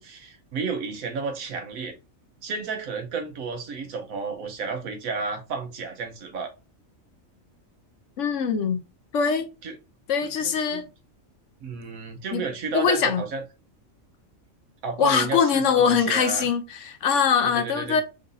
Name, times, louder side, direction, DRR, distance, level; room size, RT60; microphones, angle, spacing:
voice 1, 0.0-1.9 2.4-6.5 9.6-9.8 10.2-10.9 11.6-13.4 14.8-16.5 17.4-18.0, right 4 dB, 90° right, 1.3 m, -32 dB
voice 2, 8.2-8.8 9.1-9.5 10.1-10.9 12.3-12.4 12.7-13.2 15.0-18.0, left 6 dB, 65° left, 1.0 m, -22 dB
3.9 x 3.9 x 2.6 m
omnidirectional pair, 1.4 m